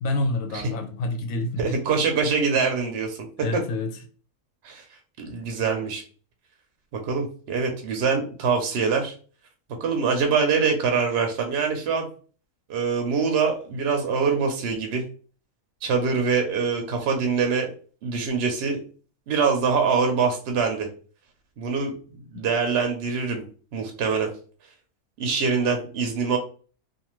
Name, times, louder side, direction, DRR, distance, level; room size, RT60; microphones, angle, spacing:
voice 1, 0.0-1.8 3.4-4.0 22.3-22.5, left 2 dB, 75° left, 0.9 m, -28 dB
voice 2, 1.6-3.2 4.6-4.8 5.2-6.0 6.9-9.1 9.8-12.1 12.7-15.0 15.8-17.7 18.0-18.8 19.3-20.9 21.6-21.9 22.3-23.4 23.7-24.3 25.2-26.4, right 5 dB, 60° right, 0.6 m, -24 dB
2.5 x 2.4 x 3.0 m
omnidirectional pair, 1.6 m